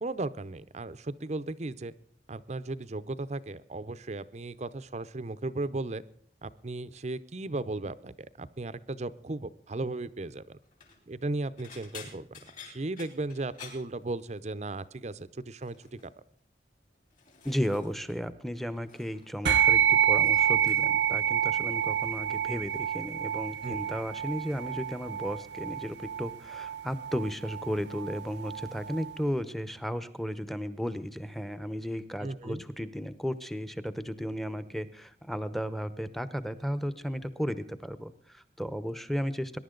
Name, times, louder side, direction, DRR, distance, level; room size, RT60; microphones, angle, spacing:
voice 1, 0.0-1.9 2.3-6.0 6.4-10.6 11.1-12.3 12.6-16.1 23.6-23.8 32.2-32.6, right 2 dB, 40° right, 14 dB, 0.6 m, -36 dB
sound 1, 10.6-11.0 11.6-14.6 14.9-15.2 15.6-16.1 16.8-18.2 18.5-19.3 19.6-21.1 22.0-22.3 22.7-24.7 25.0-25.5 25.9-26.1 27.4-27.5, left 6 dB, 45° left, 4.3 m, -52 dB
voice 2, 17.4-39.6, equal, ahead, 13 dB, 0.8 m, -34 dB
sound 2, 19.5-29.1, right 9 dB, 90° right, 0.7 m, -28 dB
21.0 x 11.0 x 3.8 m, 0.63 s
head